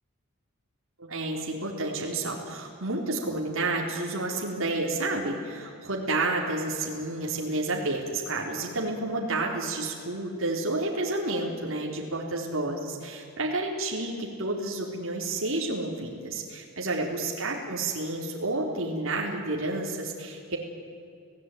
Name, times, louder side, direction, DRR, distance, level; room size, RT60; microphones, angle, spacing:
voice 1, 1.0-20.6, right 2 dB, 65° right, -1 dB, 4.0 m, -30 dB
30.0 x 17.5 x 9.4 m, 2.5 s
head